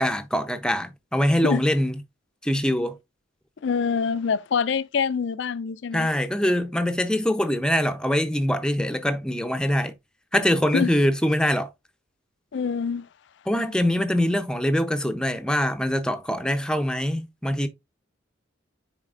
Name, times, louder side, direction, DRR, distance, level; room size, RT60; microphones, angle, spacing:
voice 1, 0.0-2.0 2.4-3.0 5.9-9.9 10.3-11.7 13.5-17.7, equal, 5° left, 0.6 m, -23 dB
voice 2, 3.6-6.1 10.7-10.9 12.5-13.1, left 6 dB, 65° left, 0.4 m, -25 dB
9.6 x 4.1 x 2.4 m
head